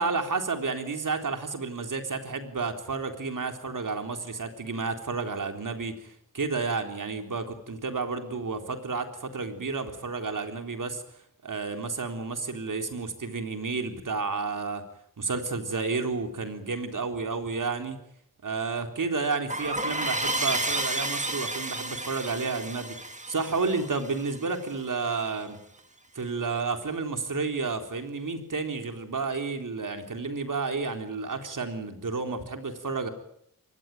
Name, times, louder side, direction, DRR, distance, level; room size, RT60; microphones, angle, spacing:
voice 1, 0.0-11.0 11.4-14.8 15.2-18.0 18.4-25.6 26.2-33.1, right 4 dB, 65° right, 6 dB, 3.8 m, -31 dB
sound 1, 19.5-24.8, right 2 dB, 20° right, 2.5 m, -31 dB
23.5 x 20.0 x 9.1 m, 0.72 s
wide cardioid pair, 70°, 34 cm